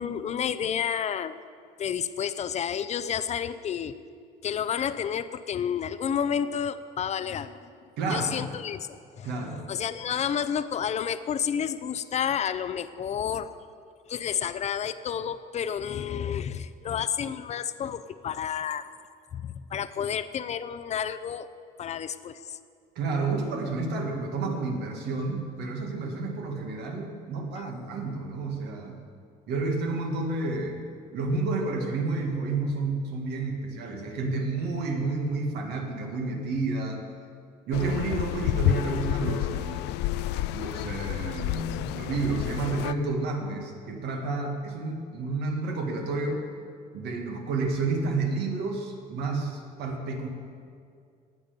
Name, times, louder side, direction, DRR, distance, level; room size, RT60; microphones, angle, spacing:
voice 1, 0.0-1.4 1.8-4.0 4.4-7.5 8.1-8.9 9.2-9.3 9.7-13.5 14.1-18.9 19.3-21.5 21.8-22.6 27.6-27.7, left 8 dB, 40° left, 13 dB, 0.6 m, -30 dB
voice 2, 8.0-8.4 9.2-9.6 23.0-29.0 29.5-30.8 31.1-37.1 37.7-39.9 40.5-46.4 46.9-50.3, right 3 dB, 80° right, 2 dB, 2.0 m, -30 dB
sound 1, 37.7-42.9, left 14 dB, 90° left, 0.4 m, -29 dB
18.5 x 7.0 x 5.2 m, 2.3 s
cardioid pair, 110°, 17 cm